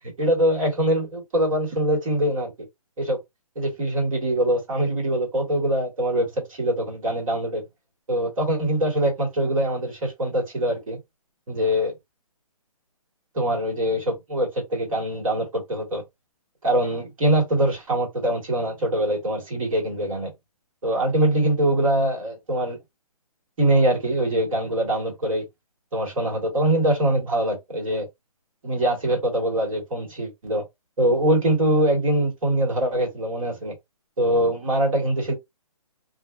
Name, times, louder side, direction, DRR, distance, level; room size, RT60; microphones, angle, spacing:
voice 1, 0.2-2.5 3.0-3.2 3.5-7.6 8.1-11.0 11.5-11.9 13.3-16.0 16.6-20.3 20.8-22.8 23.6-25.4 25.9-28.1 28.6-30.6 31.0-33.7 34.2-35.3, right 1 dB, 60° right, 1.5 m, -23 dB
2.5 x 2.2 x 2.3 m
hypercardioid pair, 155°, 20 cm